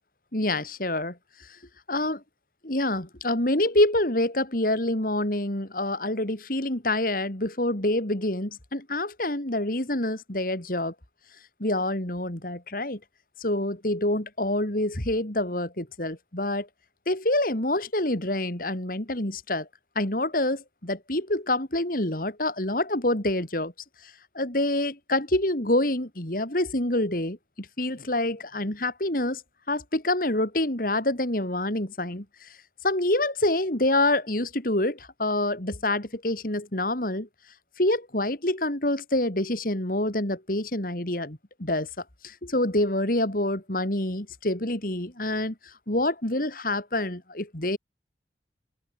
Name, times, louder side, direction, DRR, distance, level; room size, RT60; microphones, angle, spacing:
voice 1, 0.3-1.1 1.9-2.2 2.6-10.9 11.6-13.0 13.4-16.7 17.1-19.7 19.9-23.7 24.3-29.4 29.7-32.2 32.8-37.3 37.8-41.9 42.2-45.5 45.9-47.8, left 1 dB, 50° left, 3.4 m, -26 dB
head